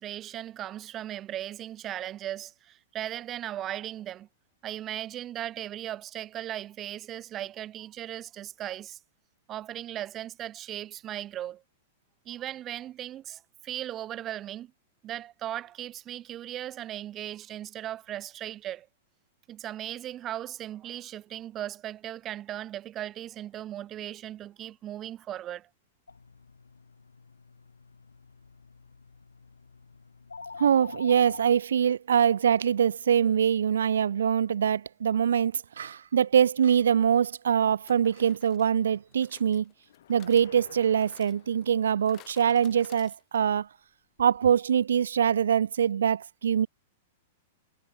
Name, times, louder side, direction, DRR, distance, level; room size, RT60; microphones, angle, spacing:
voice 1, 0.0-4.3 4.6-9.0 9.5-11.6 12.3-14.7 15.0-18.9 19.5-25.7, right 12 dB, 30° right, 1.7 m, -37 dB
sound 1, 26.1-31.5, left 4 dB, 80° left, 5.9 m, -46 dB
voice 2, 30.6-39.7 40.1-43.7 44.2-46.7, right 8 dB, 70° right, 0.5 m, -24 dB
sound 2, 36.6-36.7 37.9-43.6 43.9-44.0 44.2-44.3, left 17 dB, 35° left, 6.5 m, -57 dB
sound 3, 39.8-42.2, left 11 dB, 65° left, 4.1 m, -53 dB
figure-of-eight pair, 100°, 0 cm